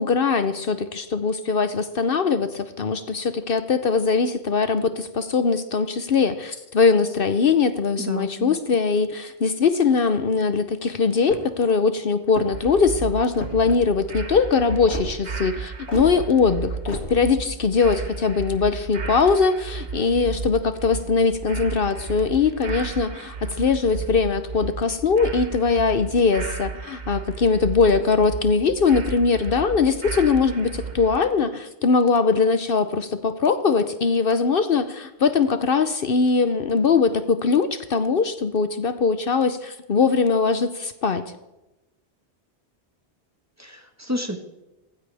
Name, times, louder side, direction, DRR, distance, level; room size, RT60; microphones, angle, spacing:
voice 1, 0.0-41.2, left 5 dB, 60° left, 11 dB, 0.9 m, -21 dB
voice 2, 8.0-8.6 43.6-44.4, left 1 dB, 15° right, 5 dB, 1.3 m, -31 dB
sound 1, 11.2-11.6 12.2-12.7 13.3-13.8 14.9-15.1 15.9-16.1 16.9-17.1, left 2 dB, 85° left, 2.6 m, -33 dB
sound 2, 12.5-31.2, right 5 dB, 45° right, 1.3 m, -34 dB
18.0 x 15.5 x 3.4 m, 0.97 s
omnidirectional pair, 1.1 m